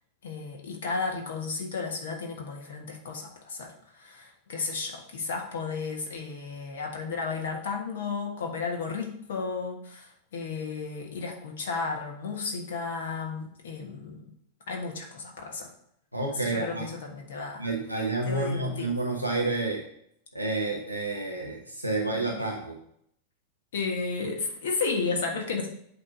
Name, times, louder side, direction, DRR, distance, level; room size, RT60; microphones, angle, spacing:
voice 1, 0.2-14.3 14.7-15.7 16.4-17.7 18.3-18.9 23.7-25.7, left 4 dB, 60° left, 2 dB, 1.4 m, -33 dB
voice 2, 16.1-16.9 17.6-19.8 20.3-22.8, right 2 dB, 90° left, 0 dB, 1.0 m, -29 dB
8.3 x 3.2 x 5.2 m, 0.69 s
figure-of-eight pair, 90°, 0 cm